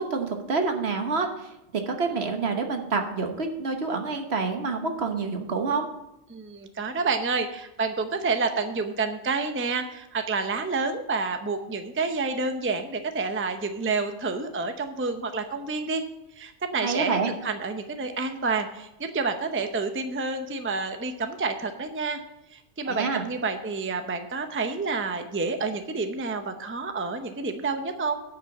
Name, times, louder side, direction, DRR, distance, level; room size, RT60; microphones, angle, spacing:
voice 1, 0.0-5.9 16.8-17.3 22.9-23.2, right 4 dB, 65° right, 5 dB, 1.4 m, -27 dB
voice 2, 6.3-16.0 16.4-22.2 22.5-28.2, right 4 dB, 15° right, 7 dB, 0.6 m, -29 dB
10.0 x 5.4 x 7.1 m, 0.89 s
omnidirectional pair, 1.2 m